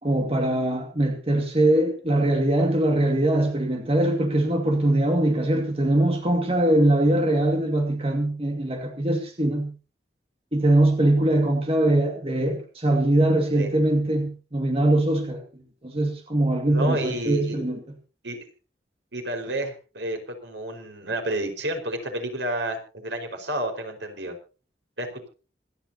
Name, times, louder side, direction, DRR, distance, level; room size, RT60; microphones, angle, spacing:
voice 1, 0.0-9.7 10.5-15.4 15.8-17.8, right 1 dB, 35° right, 2.1 m, -22 dB
voice 2, 16.7-17.6 18.2-18.4 19.1-24.3 25.0-25.3, right 1 dB, 85° right, 5.0 m, -30 dB
26.5 x 10.5 x 2.8 m
head